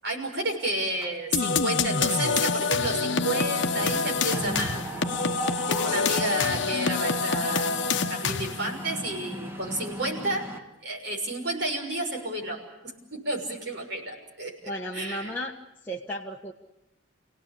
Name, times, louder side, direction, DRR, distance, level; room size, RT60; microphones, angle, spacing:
voice 1, 0.0-4.8 5.7-7.7 8.0-10.4 10.8-12.6 13.1-14.5 14.9-15.3, right 1 dB, 55° right, 1 dB, 6.3 m, -31 dB
Mechanisms, 1.0-1.6 1.9-2.2 2.4-10.6, right 1 dB, 15° right, 1.7 m, -38 dB
sound 1, 1.3-8.7, left 5 dB, 60° left, 1.0 m, -26 dB
Piano, 2.9-9.6, right 1 dB, 80° right, 2.0 m, -48 dB
voice 2, 14.7-15.5 15.8-16.5, equal, 10° left, -3 dB, 1.5 m, -34 dB
29.5 x 18.0 x 8.6 m, 0.99 s
head